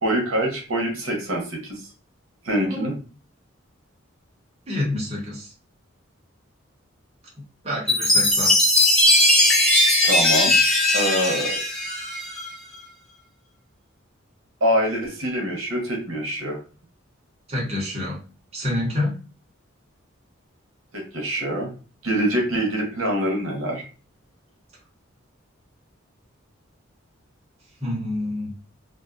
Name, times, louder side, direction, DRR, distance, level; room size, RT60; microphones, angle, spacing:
voice 1, 0.0-1.9 2.4-2.9 10.0-10.6 10.9-11.6 14.6-16.6 20.9-21.7 22.0-23.8, equal, 85° right, 0 dB, 0.8 m, -24 dB
voice 2, 4.7-5.5 7.6-8.6 17.5-18.2 18.5-19.2 27.8-28.5, left 1 dB, 30° right, -4 dB, 0.9 m, -27 dB
Chime, 7.9-12.5, left 1 dB, 5° left, 0.5 m, -18 dB
2.4 x 2.3 x 2.3 m, 0.36 s
head